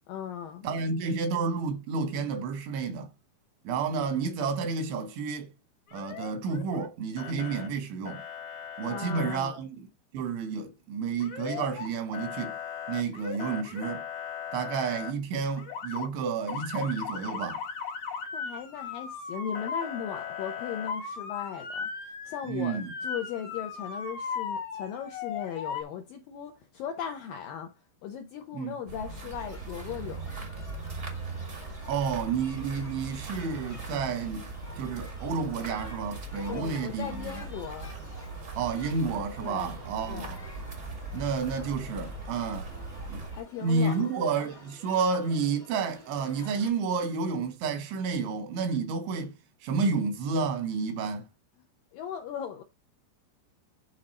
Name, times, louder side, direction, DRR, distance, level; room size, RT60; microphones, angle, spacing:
voice 1, 0.1-0.7 4.0-4.1 8.8-9.6 18.3-21.9 22.3-27.7 28.0-30.2 36.5-37.9 39.4-39.8 40.1-40.3 43.4-44.1 51.9-52.6, left 8 dB, 80° left, 2.0 m, -37 dB
voice 2, 0.6-3.1 3.7-5.5 5.9-8.2 8.8-9.9 10.1-12.6 12.9-14.1 14.5-17.6 22.5-22.9 28.5-28.7 31.9-34.5 34.8-37.4 38.6-40.4 41.1-42.7 43.1-43.3 43.6-49.3 49.6-51.3, right 5 dB, 85° right, 3.9 m, -30 dB
Motor vehicle (road) / Siren, 5.9-6.9 7.2-7.7 8.0-9.4 11.2-11.9 12.1-15.1 15.6-16.1 16.5-25.8, left 6 dB, 60° left, 1.5 m, -37 dB
sound 1, 28.9-43.4, right 3 dB, 70° right, 0.7 m, -40 dB
Shout / Human group actions, 29.1-46.7, left 1 dB, 20° left, 0.9 m, -51 dB
10.0 x 3.9 x 4.2 m
omnidirectional pair, 5.1 m